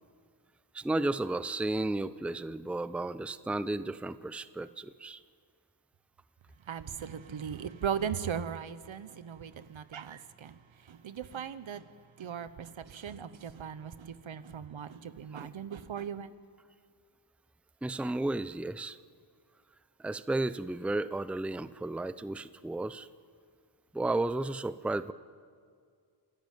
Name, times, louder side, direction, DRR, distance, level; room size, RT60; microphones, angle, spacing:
voice 1, 0.7-5.2 15.3-15.5 17.8-19.0 20.0-23.1 23.9-25.1, right 2 dB, 5° right, 0.6 m, -33 dB
voice 2, 6.7-10.6 10.8-11.9 12.2-16.3, right 8 dB, 65° right, 1.1 m, -38 dB
27.0 x 13.0 x 9.2 m
cardioid pair, 65°, 50 cm